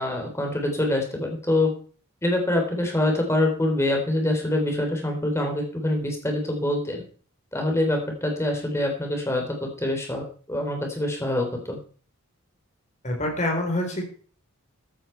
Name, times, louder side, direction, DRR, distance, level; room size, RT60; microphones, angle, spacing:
voice 1, 0.0-1.7 2.2-7.0 7.5-11.8, left 1 dB, 10° left, 2 dB, 3.4 m, -25 dB
voice 2, 13.0-14.0, left 1 dB, 30° left, 3 dB, 4.1 m, -26 dB
14.0 x 11.0 x 4.5 m, 0.42 s
head